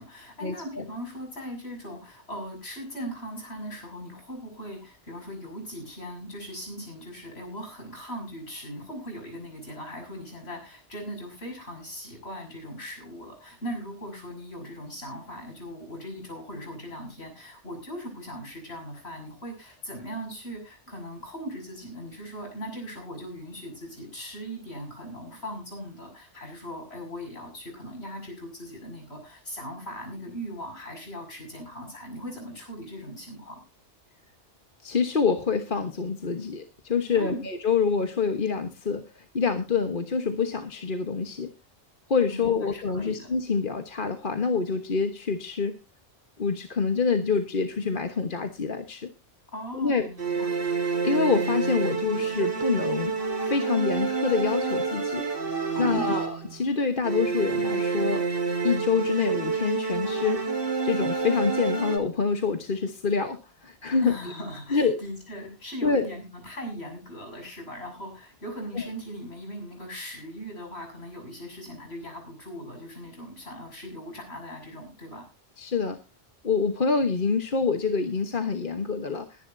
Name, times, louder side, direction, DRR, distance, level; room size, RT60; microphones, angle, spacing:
voice 1, 0.0-33.6 37.1-37.5 42.3-43.3 49.5-50.6 55.7-56.1 64.0-75.2, equal, 65° left, 3 dB, 7.0 m, -39 dB
voice 2, 34.8-39.0 39.3-41.5 42.1-45.8 46.4-49.1 49.7-50.1 51.0-53.1 53.4-55.2 55.8-58.3 58.6-60.5 60.8-64.1 64.7-65.0 65.8-66.1 68.7-68.9 75.6-76.0 76.4-79.3, left 5 dB, 50° left, 6 dB, 1.4 m, -26 dB
sound 1, 50.2-56.6 57.0-62.0, right 4 dB, 55° right, 2.9 m, -28 dB
21.5 x 11.0 x 2.7 m, 0.28 s
omnidirectional pair, 1.2 m